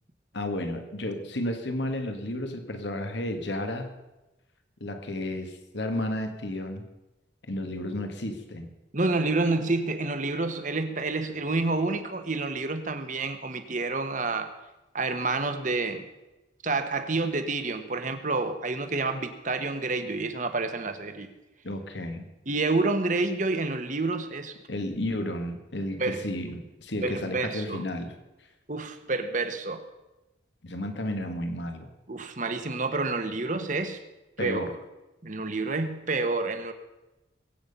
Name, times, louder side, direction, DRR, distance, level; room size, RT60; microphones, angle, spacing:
voice 1, 0.3-3.9 4.8-6.9 7.5-8.7 21.6-22.3 24.7-28.1 30.6-31.9 34.4-34.8, left 1 dB, 75° left, 6 dB, 1.8 m, -32 dB
voice 2, 8.9-14.5 14.9-16.1 16.6-21.3 22.5-24.5 26.0-26.2 27.0-27.8 28.7-29.9 32.1-34.0 34.4-34.7 35.2-36.7, right 3 dB, 45° right, 8 dB, 1.3 m, -28 dB
22.0 x 8.9 x 5.5 m, 1.0 s
head